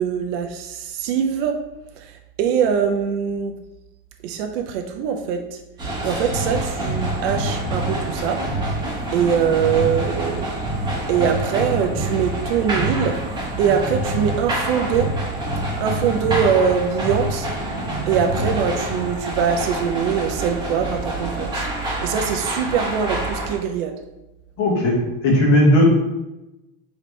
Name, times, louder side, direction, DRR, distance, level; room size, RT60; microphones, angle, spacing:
voice 1, 0.0-1.6 2.0-3.6 4.2-5.6 6.0-8.4 9.1-10.5 11.1-15.1 15.8-17.5 18.1-24.0, right 7 dB, 70° right, 4 dB, 0.5 m, -23 dB
sound 1, 5.8-23.6, right 1 dB, 15° right, 1.1 m, -26 dB
voice 2, 24.6-25.8, left 1 dB, 40° left, -3 dB, 1.3 m, -16 dB
4.2 x 2.9 x 3.2 m, 0.98 s
supercardioid pair, 150°, 30 cm